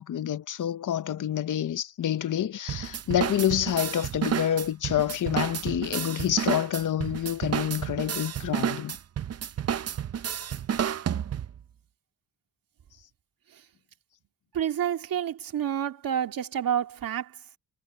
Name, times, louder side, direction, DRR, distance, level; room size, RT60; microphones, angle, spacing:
voice 1, 0.0-9.0, left 10 dB, 65° left, 0.9 m, -28 dB
sound 1, 2.7-11.6, right 9 dB, 50° right, 0.6 m, -31 dB
voice 2, 14.5-17.4, right 9 dB, 90° right, 2.3 m, -29 dB
wide cardioid pair, 145°, 33 cm